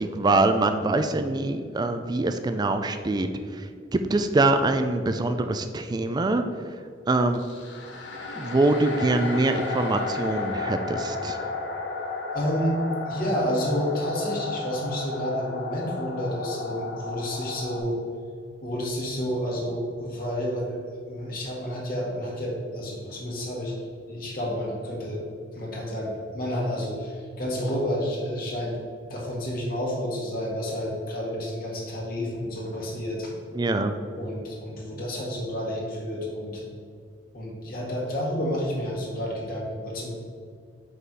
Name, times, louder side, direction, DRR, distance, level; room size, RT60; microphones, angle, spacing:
voice 1, 0.0-6.4 7.1-7.5 8.3-11.4 33.5-33.9, right 2 dB, 25° right, 8 dB, 0.3 m, -24 dB
sound 1, 7.3-17.8, left 3 dB, 85° left, 0.9 m, -33 dB
voice 2, 12.3-12.8 13.0-18.0 18.6-20.8 21.1-23.7 24.1-25.2 25.5-28.8 29.1-33.3 33.6-33.7 34.2-36.6 37.3-40.1, equal, 55° left, -4 dB, 1.6 m, -30 dB
5.4 x 4.1 x 6.1 m, 2.1 s
head